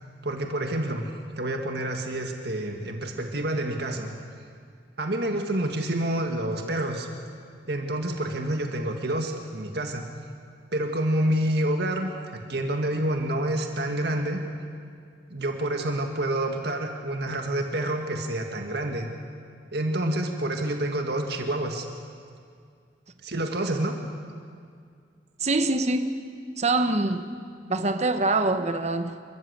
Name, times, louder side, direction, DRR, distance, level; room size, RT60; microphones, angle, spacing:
voice 1, 0.2-4.1 5.0-7.1 7.7-10.1 10.7-12.1 12.5-14.4 15.3-19.1 19.7-21.9 23.2-24.0, right 1 dB, 65° right, 1.8 m, -28 dB
voice 2, 25.4-26.1 26.6-27.3 27.7-29.2, right 2 dB, 40° right, 1.1 m, -24 dB
28.5 x 14.0 x 8.2 m
head